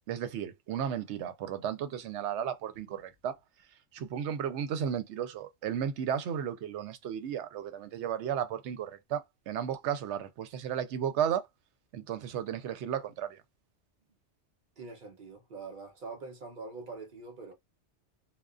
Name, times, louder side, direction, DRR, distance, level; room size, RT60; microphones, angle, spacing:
voice 1, 0.1-3.3 3.9-11.4 11.9-13.4, right 9 dB, 80° right, 0.9 m, -34 dB
voice 2, 14.8-17.5, right 4 dB, 50° right, 0.9 m, -44 dB
2.3 x 2.3 x 2.4 m
omnidirectional pair, 1.2 m